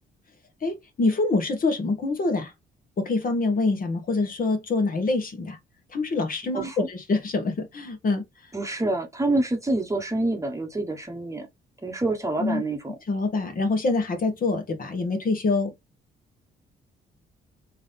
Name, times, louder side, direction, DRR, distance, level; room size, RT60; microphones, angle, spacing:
voice 1, 0.6-2.5 3.0-5.6 5.9-8.2 12.4-12.6 13.1-15.7, left 3 dB, 45° left, 1.5 m, -25 dB
voice 2, 6.5-6.9 8.5-11.5 11.8-13.0, right 2 dB, 15° right, 1.1 m, -27 dB
3.7 x 2.9 x 3.3 m
cardioid pair, 90°, 20 cm